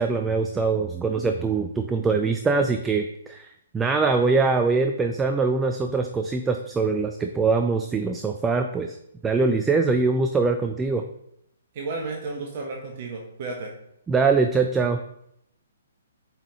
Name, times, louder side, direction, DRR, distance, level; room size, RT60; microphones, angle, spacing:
voice 1, 0.0-3.5 3.7-9.0 9.2-11.0 14.1-15.0, right 4 dB, 10° right, 5 dB, 0.4 m, -23 dB
voice 2, 11.7-13.7, right 3 dB, 40° right, 0 dB, 1.0 m, -33 dB
8.6 x 4.6 x 2.9 m, 0.76 s
figure-of-eight pair, 125°, 0 cm